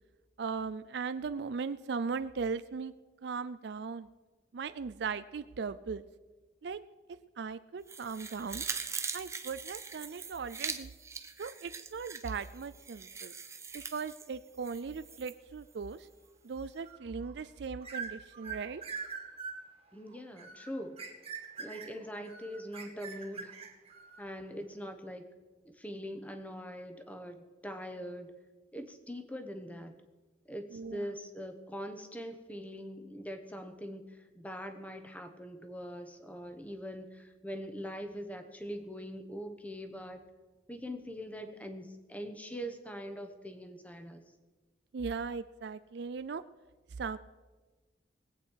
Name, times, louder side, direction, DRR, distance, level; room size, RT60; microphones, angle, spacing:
voice 1, 0.4-2.9 3.2-4.1 4.5-6.0 6.6-6.8 7.4-8.6 9.1-10.9 11.4-13.3 13.7-16.1 16.4-18.8 30.7-31.1 44.9-46.4 47.0-47.2, right 5 dB, 60° right, 13 dB, 0.4 m, -38 dB
sound 1, 7.9-15.3 15.7-15.8, right 5 dB, 15° right, 0.6 m, -42 dB
sound 2, 16.8-17.4 17.8-24.3, right 5 dB, 30° right, 1.6 m, -43 dB
voice 2, 19.9-21.0 21.6-23.6 24.2-25.3 25.6-28.3 28.7-30.0 30.5-40.2 40.7-44.2, equal, 10° left, 7 dB, 1.0 m, -42 dB
21.0 x 8.4 x 4.6 m, 1.3 s
head